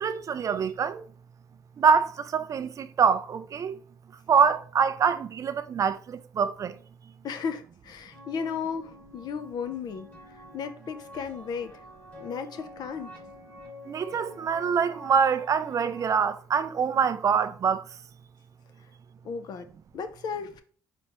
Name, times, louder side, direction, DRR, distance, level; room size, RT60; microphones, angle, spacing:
voice 1, 0.0-1.0 1.8-3.8 4.3-6.7 13.9-17.8, right 6 dB, 45° right, 0.3 m, -25 dB
voice 2, 7.2-11.7 12.2-13.1 19.2-19.7 19.9-20.6, left 6 dB, 60° left, 0.5 m, -35 dB
sound 1, 8.1-16.1, left 1 dB, 20° left, 1.4 m, -48 dB
4.2 x 3.3 x 2.9 m
cardioid pair, 95°, 8 cm